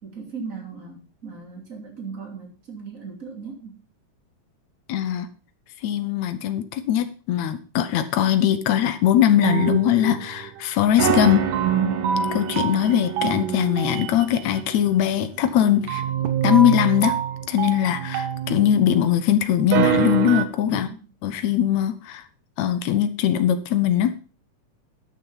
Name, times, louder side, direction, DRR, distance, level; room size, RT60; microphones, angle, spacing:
voice 1, 0.0-3.8 20.7-21.1, right 5 dB, 25° right, 2.9 m, -38 dB
voice 2, 4.9-5.3 5.8-11.5 12.3-16.0 16.4-17.2 17.5-20.9 21.2-22.2 22.6-24.1, left 11 dB, 75° left, 2.0 m, -21 dB
sound 1, 9.4-10.6 11.0-19.1 19.6-20.5, right 8 dB, 90° right, 2.6 m, -25 dB
12.0 x 6.3 x 5.5 m
omnidirectional pair, 3.5 m